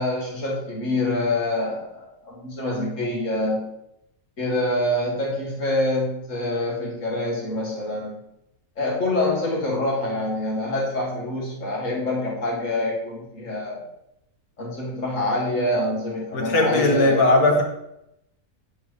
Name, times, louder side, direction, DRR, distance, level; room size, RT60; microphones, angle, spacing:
voice 1, 0.0-1.9 2.2-3.7 4.4-8.3 8.8-13.8 14.6-17.3, left 1 dB, 55° left, -4 dB, 2.2 m, -26 dB
voice 2, 16.3-17.6, left 2 dB, 75° left, 1 dB, 1.6 m, -18 dB
8.6 x 4.4 x 3.2 m, 0.83 s
omnidirectional pair, 1.6 m